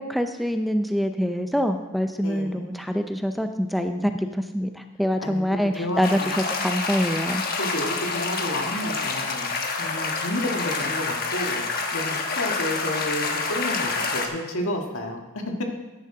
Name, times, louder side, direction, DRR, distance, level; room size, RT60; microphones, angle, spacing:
voice 1, 0.0-7.4, equal, ahead, 6 dB, 0.5 m, -25 dB
voice 2, 2.2-2.8 5.2-6.3 7.3-15.6, left 1 dB, 80° left, 2 dB, 1.8 m, -31 dB
sound 1, 6.0-14.3, left 4 dB, 45° left, 1.2 m, -28 dB
14.0 x 10.0 x 3.8 m, 1.1 s
head